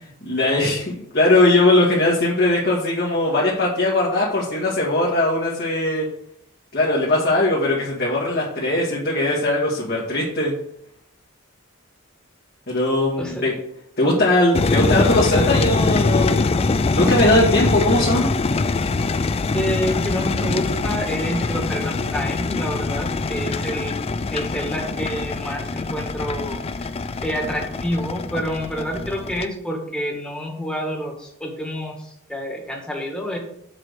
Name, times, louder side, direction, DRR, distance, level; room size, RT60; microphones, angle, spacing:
voice 1, 0.0-6.1 6.7-10.5 12.7-13.5 14.0-16.5 16.9-18.3, left 2 dB, 50° left, -5 dB, 2.0 m, -20 dB
sound 1, 14.5-29.5, left 3 dB, 30° left, 0.4 m, -23 dB
voice 2, 19.5-24.0 24.3-26.9 27.2-33.4, equal, 5° left, 0 dB, 1.7 m, -28 dB
7.5 x 4.8 x 6.7 m, 0.73 s
head